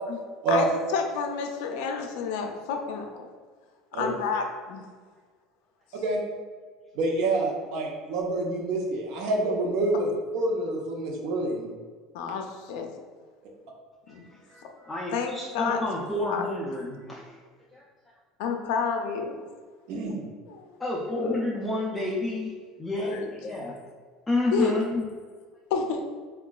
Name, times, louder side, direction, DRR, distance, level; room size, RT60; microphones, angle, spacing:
voice 1, 0.5-3.3 3.9-4.9 12.1-12.9 14.1-14.3 15.1-15.8 16.3-16.5 18.4-19.4 20.5-20.7 21.1-21.4 23.0-23.3 24.5-24.8 25.7-26.0, left 5 dB, 80° left, 4 dB, 0.4 m, -30 dB
voice 2, 6.9-10.1 10.3-11.7 19.9-20.2, right 2 dB, 65° right, 0 dB, 0.6 m, -27 dB
voice 3, 14.1-17.4 17.7-17.8 20.8-23.8 24.3-25.0, left 2 dB, 5° left, -6 dB, 0.3 m, -30 dB
3.8 x 2.3 x 2.2 m, 1.5 s
cardioid pair, 160°, 0 cm